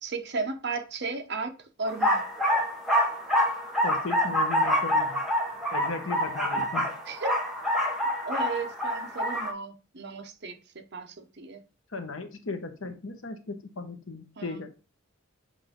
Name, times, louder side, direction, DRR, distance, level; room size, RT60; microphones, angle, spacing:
voice 1, 0.0-2.3 7.1-7.4 8.2-11.6 14.4-14.7, right 4 dB, 55° right, 0.9 m, -35 dB
sound 1, 1.9-9.5, equal, ahead, 1.0 m, -26 dB
voice 2, 3.8-5.2 5.7-6.9 11.9-14.7, left 3 dB, 70° left, 1.0 m, -36 dB
7.6 x 2.6 x 5.1 m
head